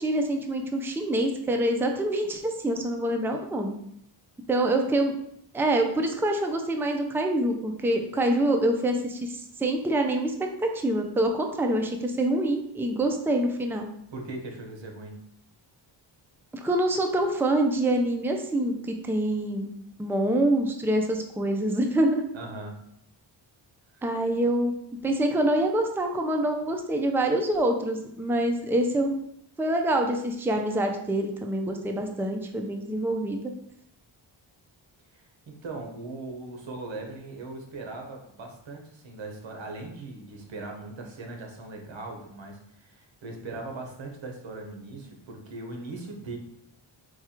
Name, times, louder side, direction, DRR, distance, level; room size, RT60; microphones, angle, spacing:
voice 1, 0.0-3.8 4.5-5.1 5.5-13.9 16.5-19.7 20.0-22.3 24.0-24.7 25.0-29.2 29.6-33.5, right 1 dB, 5° right, 4 dB, 0.4 m, -26 dB
voice 2, 14.1-15.2 22.3-22.8 23.9-24.1 35.1-46.4, right 2 dB, 70° right, 2 dB, 1.1 m, -39 dB
4.6 x 2.4 x 4.3 m, 0.73 s
cardioid pair, 95°, 47 cm